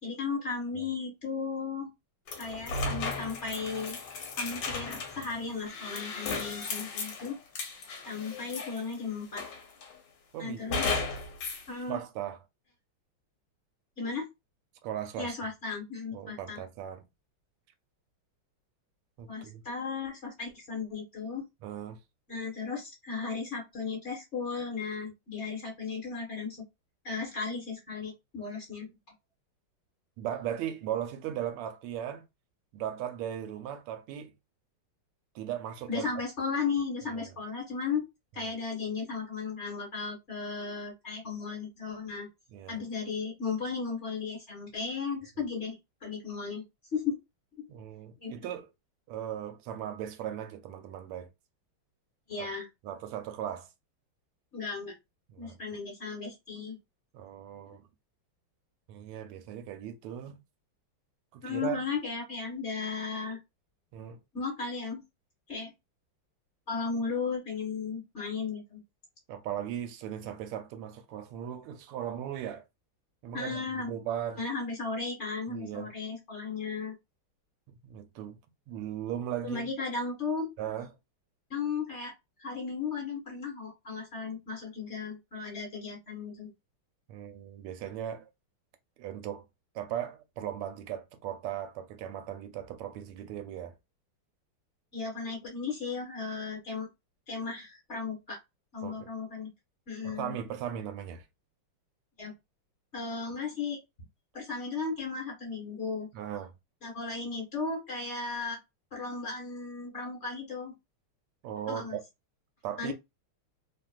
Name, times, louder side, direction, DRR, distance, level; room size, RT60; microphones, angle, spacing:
voice 1, 0.0-1.9 2.4-4.0 4.4-7.4 8.0-9.4 10.4-11.0 11.7-12.0 14.0-14.3 15.2-16.6 19.3-21.5 22.3-26.6 27.0-28.9 35.9-38.1 38.3-42.3 42.7-46.6 46.9-47.2 47.6-47.7 48.2-48.3 52.3-52.7 54.5-54.9 55.4-56.8 61.4-63.4 64.3-65.0 65.5-65.7 66.7-68.8 73.3-73.9 74.4-76.9 79.4-80.5 81.5-82.1 82.4-86.5 94.9-96.9 97.3-98.4 98.7-99.5 99.9-100.3 102.2-102.3 102.9-103.8 104.3-106.1 106.8-108.6 108.9-110.7 111.7-112.0 112.8-112.9, left 4 dB, 35° left, 1.6 m, -35 dB
sound 1, 2.3-8.9 9.4-10.0 10.7-11.6, left 3 dB, 65° left, 1.3 m, -35 dB
voice 2, 10.3-10.9 11.9-12.4 14.8-15.3 16.1-17.1 19.2-19.6 21.6-22.0 30.2-32.2 32.7-34.3 35.3-36.1 37.1-37.3 38.4-38.5 42.5-42.8 47.7-48.7 49.1-51.3 52.4-52.5 52.8-53.7 55.3-55.6 57.1-57.9 58.9-60.4 61.3-61.8 63.9-64.2 69.3-72.6 73.2-73.6 73.9-74.4 75.5-75.9 77.7-78.4 78.7-79.7 80.6-80.9 87.1-88.3 89.0-89.5 89.7-93.7 98.8-99.1 100.0-101.3 106.1-106.5 111.4-112.0 112.6-112.9, right 10 dB, 85° right, 1.5 m, -38 dB
3.4 x 2.4 x 2.3 m
omnidirectional pair, 2.4 m